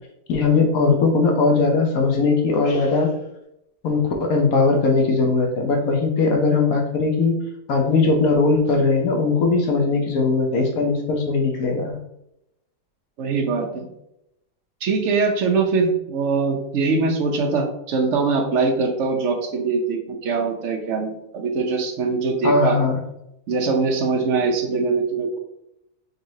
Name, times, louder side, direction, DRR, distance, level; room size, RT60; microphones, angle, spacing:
voice 1, 0.3-3.1 3.8-7.4 7.7-11.9 22.4-23.0, left 3 dB, 65° left, 2 dB, 1.0 m, -19 dB
voice 2, 13.2-13.9 14.8-22.8 23.5-25.4, right 4 dB, 60° right, 2 dB, 0.8 m, -22 dB
3.9 x 3.3 x 2.7 m, 0.81 s
omnidirectional pair, 1.8 m